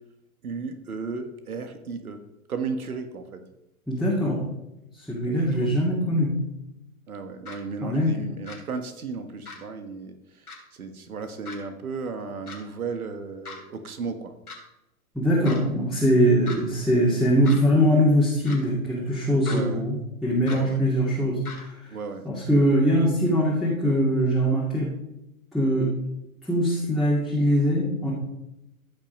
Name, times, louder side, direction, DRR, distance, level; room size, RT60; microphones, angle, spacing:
voice 1, 0.4-2.2 2.5-3.4 5.3-5.8 7.1-14.3 19.5-19.8 20.5-20.8 21.9-22.3, right 4 dB, 80° right, 8 dB, 1.5 m, -35 dB
voice 2, 3.9-4.5 4.9-6.3 7.8-8.2 15.1-21.9 22.2-24.9 25.5-25.9 26.4-28.1, equal, ahead, -6 dB, 2.3 m, -22 dB
sound 1, 7.5-7.6 8.5-8.6 9.5-9.6 10.5-10.6 11.4-11.6 12.5-12.6 13.4-13.6 14.5-14.6 15.4-15.6 16.5-16.6 17.4-17.6 18.4-18.6 19.4-19.6 20.5-20.6 21.4-21.6, left 4 dB, 90° left, 3.4 m, -38 dB
14.5 x 6.0 x 5.4 m, 0.91 s
hypercardioid pair, 110°, 43 cm